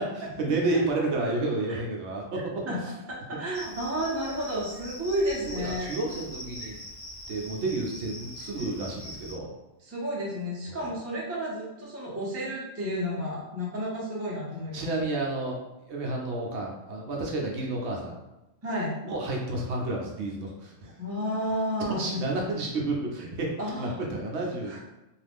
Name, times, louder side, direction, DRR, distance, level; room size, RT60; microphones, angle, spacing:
voice 1, 0.4-2.6 5.4-6.8 7.3-9.5 10.7-10.8 14.7-15.6 15.9-18.2 19.1-21.0 21.9-24.8, right 2 dB, 65° right, -1 dB, 0.8 m, -31 dB
voice 2, 3.1-5.9 9.8-14.9 18.6-18.9 21.0-22.2 23.6-24.0 24.6-24.8, equal, 20° right, -5 dB, 0.4 m, -31 dB
Cricket, 3.5-9.3, left 1 dB, 50° left, 1.0 m, -42 dB
2.5 x 2.3 x 3.4 m, 0.98 s
omnidirectional pair, 1.3 m